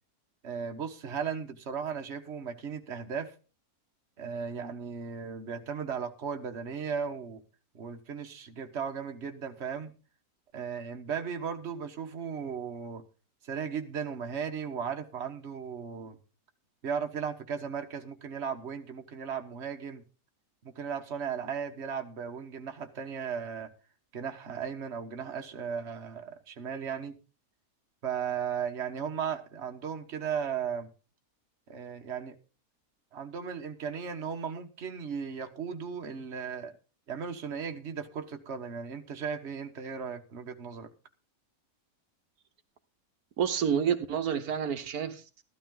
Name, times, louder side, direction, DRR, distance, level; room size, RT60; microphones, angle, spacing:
voice 1, 0.4-3.3 4.2-7.4 7.7-9.9 10.5-13.0 13.4-16.2 16.8-20.0 20.6-23.7 24.1-27.1 28.0-30.9 31.7-32.3 33.1-36.7 37.1-40.9, right 7 dB, 50° right, 5 dB, 1.5 m, -36 dB
voice 2, 43.4-45.4, right 8 dB, 80° right, 8 dB, 1.5 m, -29 dB
14.0 x 12.5 x 3.8 m, 0.34 s
omnidirectional pair, 1.5 m